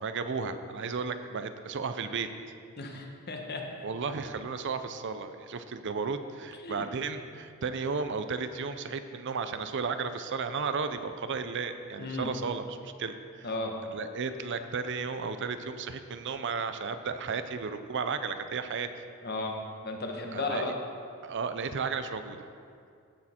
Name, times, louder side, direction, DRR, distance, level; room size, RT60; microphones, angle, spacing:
voice 1, 0.0-2.3 3.8-13.5 13.9-18.9 20.3-20.7 21.2-22.4, right 5 dB, 55° right, 9 dB, 0.6 m, -34 dB
voice 2, 2.8-3.7 6.6-6.8 12.0-12.3 13.4-13.7 19.2-20.7, left 2 dB, 50° left, 2 dB, 1.2 m, -34 dB
16.0 x 6.5 x 4.4 m, 2.3 s
head